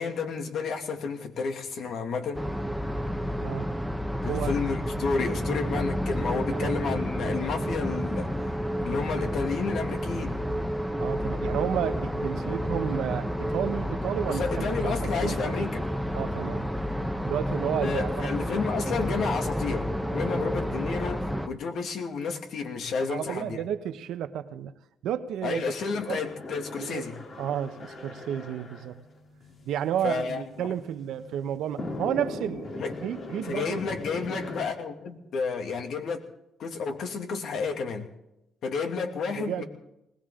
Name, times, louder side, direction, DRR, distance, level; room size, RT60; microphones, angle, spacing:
voice 1, 0.0-2.4 4.2-8.3 8.8-10.4 14.3-15.8 17.8-23.6 25.4-27.2 30.0-30.7 32.8-32.9 33.4-36.2 36.6-38.1 38.6-39.6, left 5 dB, 70° left, 5 dB, 2.4 m, -31 dB
sound 1, 2.3-21.5, equal, ahead, 1.1 m, -30 dB
voice 2, 4.3-4.6 6.5-6.7 10.9-15.5 16.1-16.6 17.2-18.3 20.3-20.5 23.0-24.7 25.0-25.7 26.1-26.2 26.8-27.0 27.4-29.0 29.7-33.8 39.3-39.6, right 10 dB, 80° right, 10 dB, 1.0 m, -32 dB
sound 2, 25.9-34.6, left 2 dB, 50° left, 3.1 m, -40 dB
20.5 x 18.0 x 3.8 m, 0.87 s
cardioid pair, 90°, 0 cm